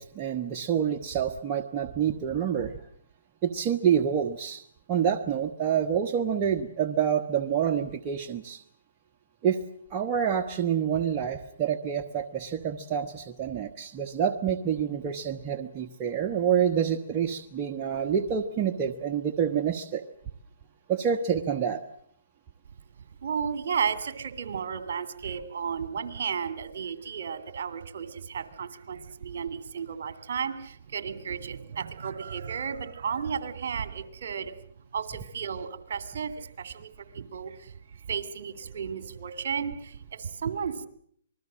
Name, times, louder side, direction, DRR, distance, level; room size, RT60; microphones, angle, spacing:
voice 1, 0.0-2.7 3.4-4.6 4.9-8.6 9.4-9.6 9.9-20.0 20.9-21.8, right 8 dB, 30° right, 4 dB, 1.3 m, -27 dB
voice 2, 23.2-34.6 34.9-40.9, right 6 dB, 60° right, 13 dB, 2.7 m, -33 dB
27.0 x 21.0 x 7.6 m, 0.65 s
hypercardioid pair, 140°, 0 cm